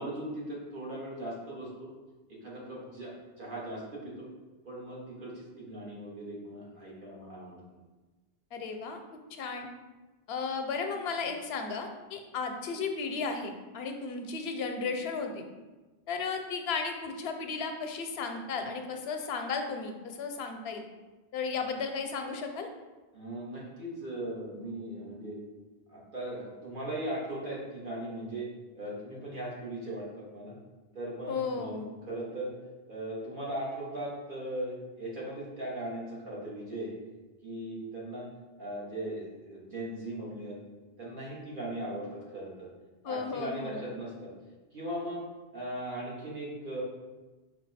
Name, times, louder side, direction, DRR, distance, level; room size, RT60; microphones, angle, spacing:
voice 1, 0.0-1.9 2.3-4.3 4.6-7.6 23.1-25.4 25.9-28.5 28.7-30.5 30.9-32.5 32.9-36.9 37.4-38.3 38.6-40.5 41.0-42.7 43.0-44.3 44.7-45.2 45.5-46.8, right 1 dB, 55° right, -5 dB, 1.4 m, -38 dB
voice 2, 8.5-9.0 9.3-9.7 10.3-15.5 16.1-20.8 21.3-22.7 31.3-31.9 43.0-44.0, left 5 dB, 85° left, 5 dB, 0.8 m, -34 dB
5.1 x 2.3 x 4.0 m, 1.2 s
omnidirectional pair, 1.0 m